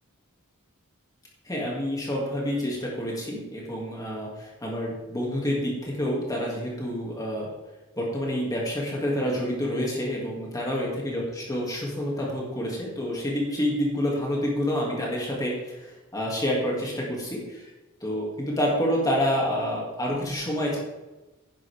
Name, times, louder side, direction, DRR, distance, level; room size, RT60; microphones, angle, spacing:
voice 1, 1.4-7.5 8.0-17.7 18.0-20.8, equal, 15° left, -3 dB, 2.5 m, -28 dB
11.0 x 10.5 x 3.6 m, 1.1 s
head